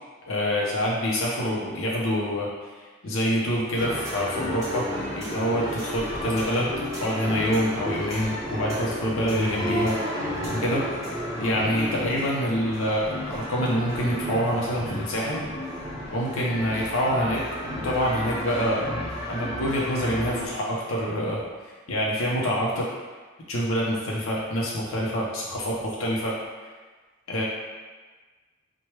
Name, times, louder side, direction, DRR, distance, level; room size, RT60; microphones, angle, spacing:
voice 1, 0.3-2.5 2.8-6.7 7.0-10.0 10.4-10.8 11.4-15.5 16.1-17.4 17.7-18.9 19.3-21.5 21.9-22.9 23.5-26.3 27.3-27.4, equal, 90° left, -4 dB, 0.6 m, -26 dB
sound 1, 3.7-20.5, equal, 15° right, 0.8 m, -32 dB
4.4 x 2.2 x 3.1 m, 1.4 s
head